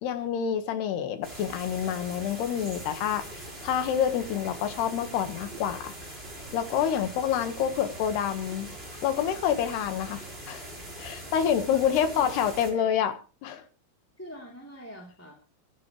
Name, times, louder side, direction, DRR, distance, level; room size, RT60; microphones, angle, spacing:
voice 1, 0.0-3.3 3.6-5.9 6.5-8.7 9.0-10.7 11.0-13.1 13.4-13.6, left 9 dB, 70° left, 8 dB, 3.4 m, -27 dB
sound 1, 1.2-12.7, right 1 dB, 15° right, 4.8 m, -42 dB
voice 2, 11.7-12.3 12.7-12.8 14.2-15.3, equal, 5° left, -1 dB, 2.4 m, -42 dB
25.0 x 11.0 x 3.3 m, 0.35 s
omnidirectional pair, 5.2 m